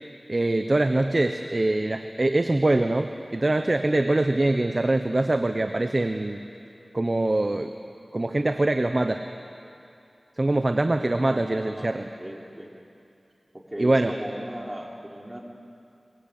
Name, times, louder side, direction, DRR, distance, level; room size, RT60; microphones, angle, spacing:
voice 1, 0.3-6.4 6.9-7.7 8.1-9.2 10.4-12.1 13.8-14.1, right 2 dB, 40° right, 7 dB, 1.0 m, -23 dB
voice 2, 11.1-12.7 13.5-15.4, right 1 dB, 20° right, -1 dB, 3.8 m, -37 dB
22.5 x 21.0 x 8.6 m, 2.6 s
wide cardioid pair, 45°, 0 cm